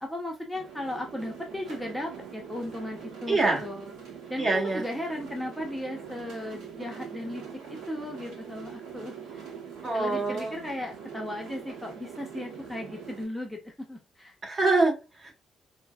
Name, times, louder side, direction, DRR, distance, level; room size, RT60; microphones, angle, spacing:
voice 1, 0.0-4.0 4.3-7.4 7.7-9.4 9.9-14.3, left 1 dB, 5° left, 0.6 m, -36 dB
sound 1, 0.5-13.2, right 7 dB, 80° right, 0.7 m, -43 dB
voice 2, 3.3-3.6 4.4-4.8 9.8-10.5 14.4-15.4, right 3 dB, 40° right, 1.3 m, -25 dB
4.3 x 2.0 x 2.2 m
cardioid pair, 90°, 0 cm